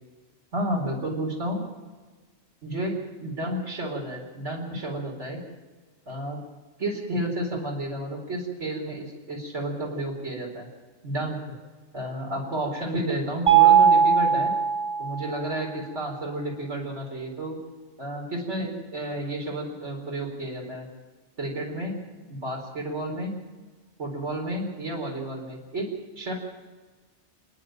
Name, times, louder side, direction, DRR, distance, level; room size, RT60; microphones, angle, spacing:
voice 1, 0.5-1.6 2.6-5.4 6.1-6.4 6.8-10.7 11.0-11.4 11.9-14.5 15.0-17.6 18.0-20.9 21.4-22.0 22.3-23.4 24.0-26.3, right 1 dB, 90° right, -1 dB, 4.7 m, -31 dB
Mallet percussion, 13.5-15.4, right 7 dB, 30° right, 1.1 m, -19 dB
29.5 x 10.0 x 8.9 m, 1.3 s
omnidirectional pair, 1.2 m